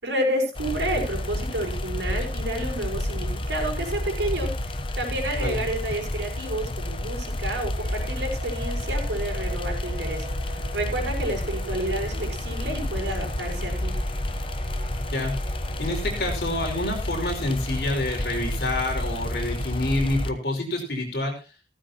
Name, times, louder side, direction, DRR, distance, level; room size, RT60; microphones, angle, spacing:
voice 1, 0.0-13.9, right 1 dB, 80° right, 2 dB, 5.7 m, -30 dB
sound 1, 0.6-20.3, left 1 dB, 30° left, 0.9 m, -30 dB
sound 2, 7.7-16.2, right 1 dB, 50° right, 5.0 m, -44 dB
voice 2, 15.8-21.4, left 1 dB, 55° left, 1 dB, 5.2 m, -27 dB
15.5 x 14.0 x 2.9 m, 0.29 s
head